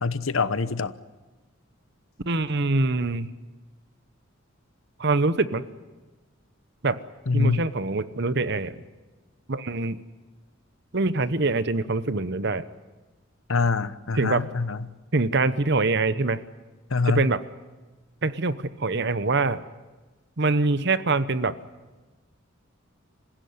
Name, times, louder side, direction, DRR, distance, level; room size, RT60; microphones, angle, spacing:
voice 1, 0.0-0.9 7.3-7.6 13.5-14.9 16.9-17.3, left 4 dB, 80° left, 14 dB, 1.0 m, -24 dB
voice 2, 2.3-3.3 5.0-5.6 6.8-7.0 7.3-8.8 9.5-10.0 10.9-12.7 14.1-14.4 15.1-16.4 17.1-17.4 18.2-19.6 20.4-21.5, right 3 dB, 55° right, 14 dB, 1.0 m, -24 dB
26.5 x 16.0 x 9.5 m, 1.2 s
head